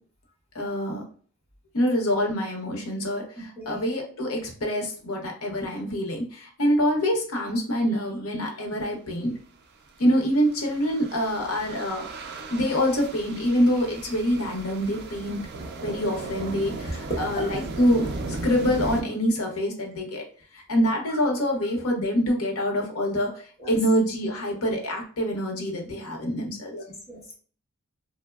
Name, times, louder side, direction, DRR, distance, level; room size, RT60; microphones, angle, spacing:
voice 1, 0.5-1.0 1.7-9.4 10.0-12.1 12.5-15.4 15.8-18.1 18.4-20.2 20.7-26.7, equal, 65° left, 1 dB, 0.7 m, -25 dB
voice 2, 3.4-3.8 17.1-17.5 23.6-23.7 26.7-27.4, right 1 dB, 30° left, -3 dB, 0.9 m, -35 dB
sound 1, 10.1-19.0, right 3 dB, 50° right, 0.4 m, -36 dB
3.0 x 2.0 x 2.3 m, 0.43 s
head